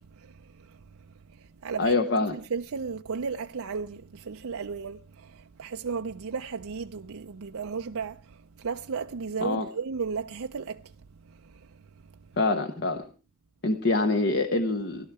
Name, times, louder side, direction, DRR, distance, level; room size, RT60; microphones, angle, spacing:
voice 1, 0.0-1.9 2.3-12.2, right 5 dB, 65° right, 0.6 m, -35 dB
voice 2, 1.8-2.4 9.4-9.6 12.4-13.0 13.6-15.1, left 3 dB, 50° left, 1.1 m, -25 dB
17.0 x 12.0 x 4.8 m
head